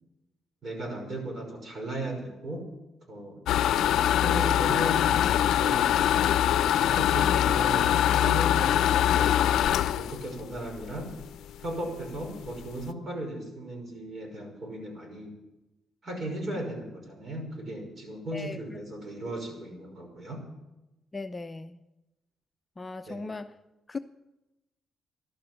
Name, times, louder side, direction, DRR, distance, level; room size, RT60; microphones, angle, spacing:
voice 1, 0.6-2.6 3.1-3.4 4.1-6.2 6.8-9.4 10.0-11.1 11.6-15.4 16.0-20.4 23.1-23.2, right 1 dB, 40° right, 2 dB, 5.7 m, -36 dB
sound 1, 3.5-11.2 11.7-11.8 12.1-12.2 12.5-12.8, left 11 dB, 80° left, 0.5 m, -23 dB
voice 2, 21.1-21.8 22.8-23.5 23.9-24.0, left 3 dB, 20° left, 8 dB, 0.6 m, -37 dB
12.5 x 12.0 x 7.7 m, 1.0 s
cardioid pair, 90°, 0 cm